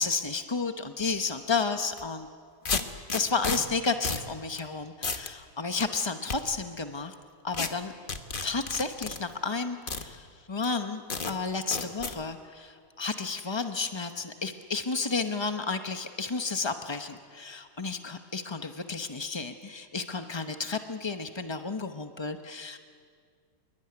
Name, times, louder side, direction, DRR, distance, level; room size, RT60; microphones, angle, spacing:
voice 1, 0.0-2.3 2.7-2.8 3.1-7.1 7.4-7.9 8.4-22.8, left 4 dB, 45° left, 7 dB, 0.3 m, -32 dB
sound 1, 1.9-2.0 2.6-3.6 4.0-4.3 4.6-4.7 5.0-5.3 5.8-6.4 7.5-7.7 8.1-9.2 9.9-10.0 10.6-10.7 11.1-11.3 11.7-12.1, left 4 dB, 30° left, 1.2 m, -31 dB
26.0 x 23.0 x 9.8 m, 2.1 s
omnidirectional pair, 2.2 m